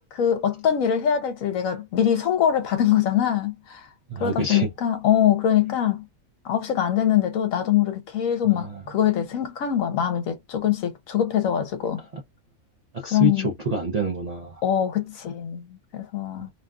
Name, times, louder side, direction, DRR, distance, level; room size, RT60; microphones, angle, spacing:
voice 1, 0.1-3.9 4.2-6.1 6.4-12.0 13.1-13.5 14.6-16.5, left 10 dB, 70° left, 1.0 m, -23 dB
voice 2, 4.1-4.7 8.4-8.8 12.9-14.6 16.4-16.5, right 2 dB, 55° right, 0.4 m, -27 dB
2.8 x 2.3 x 2.3 m
omnidirectional pair, 1.6 m